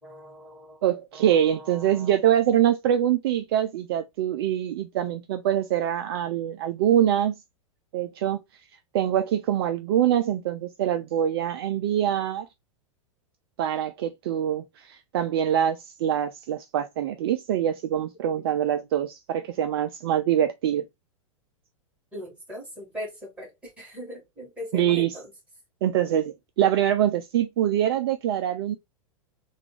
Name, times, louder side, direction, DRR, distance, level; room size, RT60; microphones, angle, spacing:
voice 1, 0.0-0.8 1.1-2.1 18.4-18.5 22.1-25.3, equal, 5° right, 2.2 m, -40 dB
voice 2, 0.8-7.4 7.9-8.4 8.9-12.5 13.6-20.8 24.7-25.2 25.8-28.8, right 10 dB, 45° right, 0.4 m, -24 dB
3.5 x 2.4 x 3.3 m
figure-of-eight pair, 95°, 17 cm